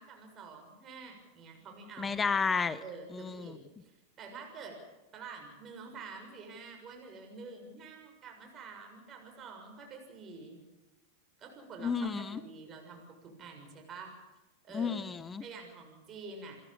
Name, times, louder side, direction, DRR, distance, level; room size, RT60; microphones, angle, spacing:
voice 1, 0.0-2.2 2.8-4.8 5.1-10.6 11.4-14.1 14.6-15.0 15.4-16.6, right 4 dB, 35° right, 3 dB, 6.9 m, -48 dB
voice 2, 2.0-2.8 3.1-3.6 11.8-12.4 14.7-15.4, left 5 dB, 20° left, 15 dB, 1.1 m, -32 dB
29.0 x 12.5 x 8.8 m, 1.1 s
hypercardioid pair, 100°, 0 cm